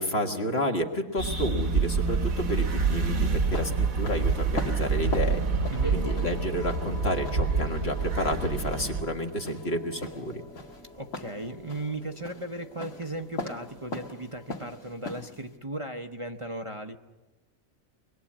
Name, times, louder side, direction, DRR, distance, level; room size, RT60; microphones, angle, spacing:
voice 1, 0.0-5.4 5.9-10.4, left 1 dB, 50° left, 3 dB, 1.9 m, -30 dB
sound 1, 1.2-15.6, left 2 dB, 65° left, 2.2 m, -41 dB
sound 2, 1.2-9.0, right 4 dB, 80° right, 1.8 m, -27 dB
sound 3, 1.4-14.6, left 1 dB, 5° left, 2.7 m, -48 dB
voice 2, 5.7-6.0 10.9-17.0, right 1 dB, 30° right, 4 dB, 0.8 m, -36 dB
25.0 x 21.0 x 8.6 m, 1.1 s
omnidirectional pair, 1.4 m